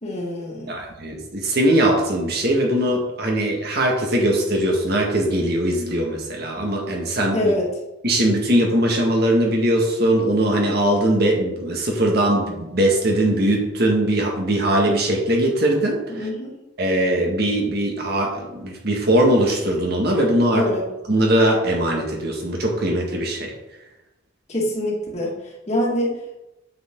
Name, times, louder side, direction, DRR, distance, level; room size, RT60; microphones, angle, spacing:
voice 1, 0.0-0.8 7.3-7.7 16.1-16.5 20.4-20.9 24.5-26.4, left 1 dB, 35° left, -3 dB, 2.1 m, -25 dB
voice 2, 0.7-7.5 8.0-16.3 16.8-20.6 21.1-23.5, right 1 dB, 55° right, 0 dB, 1.9 m, -20 dB
8.6 x 7.0 x 3.8 m, 0.97 s
head